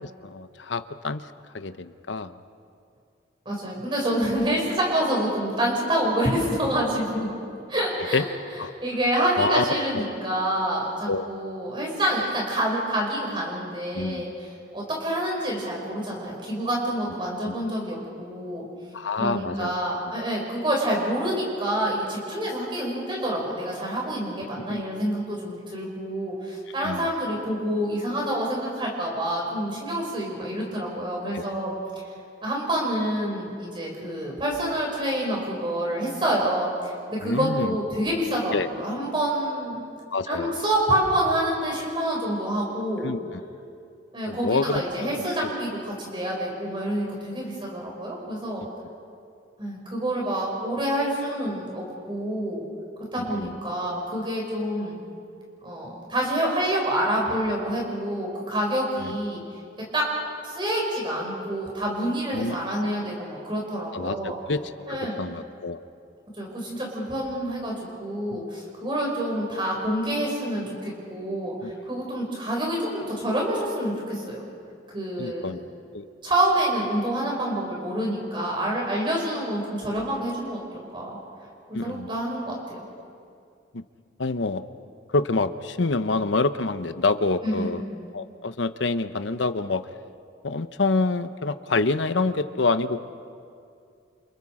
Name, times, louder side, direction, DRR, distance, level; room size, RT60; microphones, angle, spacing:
voice 1, 0.0-1.3 1.5-2.4 8.1-8.2 8.6-8.7 9.4-9.6 11.1-11.3 13.9-14.2 17.5-17.6 18.9-19.7 24.7-24.8 26.8-27.1 31.3-31.4 37.2-37.8 38.5-38.7 40.1-40.6 43.0-43.2 44.3-45.1 45.4-45.5 53.3-53.6 59.0-59.1 62.3-62.8 63.9-64.6 64.9-65.8 68.3-68.4 71.6-71.7 75.2-75.6 75.9-76.1 81.7-82.1 83.7-83.8 84.2-84.6 85.1-87.8 88.1-89.9 90.4-93.1, left 3 dB, 75° left, 11 dB, 0.9 m, -27 dB
voice 2, 3.4-7.3 7.7-8.3 8.8-18.6 19.2-31.7 32.4-39.8 40.3-43.1 44.1-48.6 49.6-52.6 53.1-55.0 55.6-59.4 59.9-60.0 60.4-64.4 64.9-65.3 66.4-74.4 74.9-75.6 76.2-81.2 81.7-82.8 87.4-87.8, right 1 dB, 25° right, -2 dB, 6.0 m, -27 dB
29.0 x 29.0 x 5.0 m, 2.4 s
head